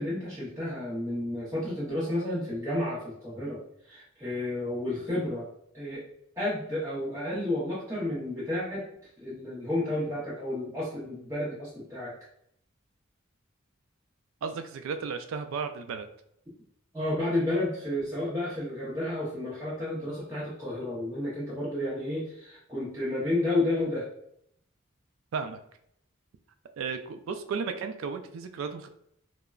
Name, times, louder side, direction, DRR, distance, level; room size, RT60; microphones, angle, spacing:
voice 1, 0.0-5.5 5.7-6.0 6.4-8.9 9.2-12.2 16.9-24.1, left 1 dB, 15° right, -9 dB, 0.7 m, -31 dB
voice 2, 14.4-16.1 25.3-25.6 26.8-28.9, right 5 dB, 70° right, 8 dB, 0.3 m, -34 dB
3.5 x 2.0 x 2.3 m, 0.71 s
head